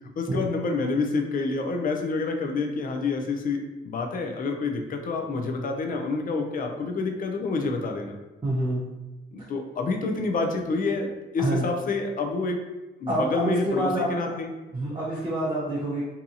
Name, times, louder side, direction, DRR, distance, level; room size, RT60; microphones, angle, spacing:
voice 1, 0.2-8.2 9.3-12.6 13.0-14.5, left 3 dB, 45° left, 4 dB, 0.5 m, -28 dB
voice 2, 8.4-8.8 11.4-11.7 13.1-14.3 14.7-16.1, right 1 dB, 25° right, -7 dB, 0.6 m, -27 dB
2.7 x 2.3 x 2.6 m, 1.1 s
cardioid pair, 90°, 20 cm